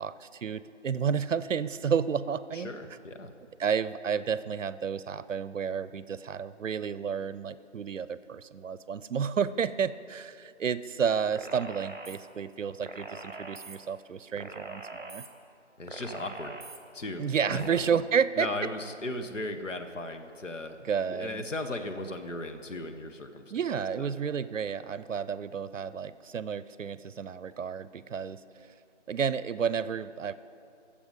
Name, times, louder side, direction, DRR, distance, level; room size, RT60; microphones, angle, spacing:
voice 1, 0.0-2.7 3.6-15.2 17.2-18.5 20.8-21.5 23.5-28.7 29.1-30.3, right 7 dB, 80° right, 15 dB, 0.6 m, -31 dB
voice 2, 2.5-3.3 15.8-16.5 16.9-17.2 17.5-17.8 18.4-20.8 21.1-23.4 24.0-24.1, left 2 dB, 80° left, 6 dB, 1.2 m, -36 dB
sound 1, 11.3-12.2 12.8-13.8 14.4-15.3 15.9-16.8 17.4-17.8, right 3 dB, 40° right, 1.0 m, -42 dB
14.5 x 7.1 x 5.2 m, 2.7 s
figure-of-eight pair, 180°, 37 cm